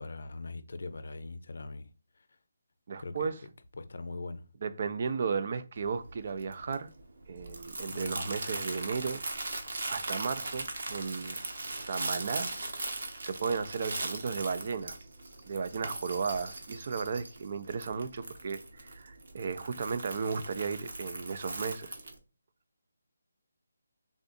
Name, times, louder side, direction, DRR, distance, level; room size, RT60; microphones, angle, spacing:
voice 1, 0.0-1.9 3.0-3.3 3.7-4.4 7.9-8.3, left 3 dB, 65° left, 0.5 m, -41 dB
voice 2, 2.9-3.3 4.6-6.9 7.3-9.2 9.9-12.5 12.9-15.0 15.5-22.0, right 5 dB, 40° right, 0.4 m, -35 dB
Crumpling crinkling, 5.8-22.2, right 2 dB, 60° right, 0.9 m, -40 dB
3.6 x 2.5 x 2.4 m
hypercardioid pair, 170°, 0 cm